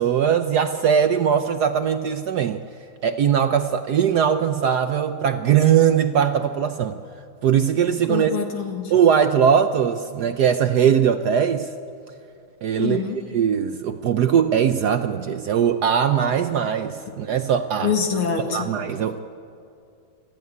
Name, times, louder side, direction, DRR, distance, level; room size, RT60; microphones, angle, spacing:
voice 1, 0.0-2.6 3.0-7.0 7.4-8.3 8.9-11.7 12.6-13.0 13.3-17.9 18.4-19.2, right 8 dB, 65° right, 8 dB, 1.0 m, -20 dB
voice 2, 8.1-8.9 12.8-13.2 17.8-18.7, left 6 dB, 80° left, 4 dB, 2.9 m, -25 dB
26.5 x 14.0 x 9.4 m, 2.5 s
omnidirectional pair, 2.3 m